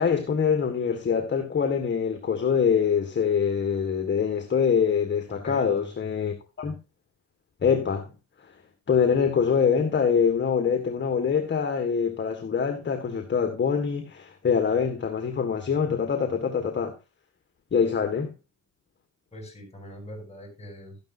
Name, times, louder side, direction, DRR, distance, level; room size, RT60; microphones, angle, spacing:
voice 1, 0.0-6.7 7.6-8.1 8.9-16.9 17.7-18.3, left 6 dB, 40° left, 1.7 m, -24 dB
voice 2, 5.3-5.9 19.3-21.0, left 1 dB, 20° left, 7.9 m, -42 dB
13.0 x 10.5 x 2.7 m
cardioid pair, 90°, 30 cm